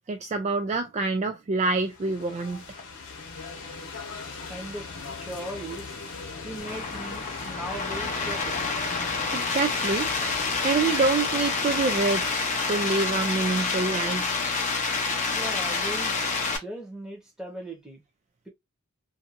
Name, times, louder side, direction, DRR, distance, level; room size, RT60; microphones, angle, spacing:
voice 1, 0.1-2.8 9.3-10.1 10.6-14.3, right 3 dB, 30° right, 0.3 m, -26 dB
sound 1, 1.7-12.3, left 4 dB, 55° left, 0.9 m, -39 dB
voice 2, 4.5-4.9 5.2-6.0 6.4-8.6 15.3-16.3 16.6-18.0, right 1 dB, 5° right, 0.9 m, -38 dB
sound 2, 6.6-16.6, left 4 dB, 35° left, 0.7 m, -28 dB
2.7 x 2.5 x 2.5 m
head